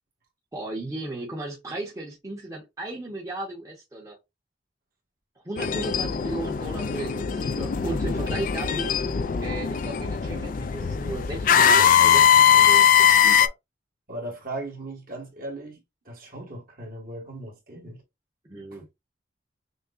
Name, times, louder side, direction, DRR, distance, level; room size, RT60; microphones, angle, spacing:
voice 1, 0.5-4.2 5.4-8.9 9.4-13.5 18.5-18.9, right 2 dB, 15° right, 0.9 m, -35 dB
sound 1, 5.6-13.5, left 8 dB, 45° left, 0.3 m, -20 dB
voice 2, 14.1-15.8 16.0-18.0, right 2 dB, 50° right, 1.6 m, -37 dB
6.3 x 2.2 x 2.5 m
head